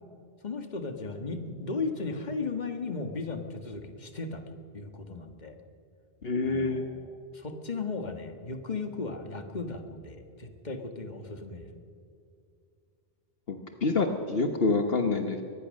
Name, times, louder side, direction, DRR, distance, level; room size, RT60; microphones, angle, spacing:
voice 1, 0.4-4.4 4.7-5.6 6.4-11.7, left 3 dB, 45° left, 5 dB, 1.7 m, -36 dB
voice 2, 6.2-6.8 13.5-15.4, left 3 dB, 65° left, 5 dB, 1.4 m, -27 dB
23.5 x 19.5 x 6.5 m, 2.5 s
omnidirectional pair, 1.1 m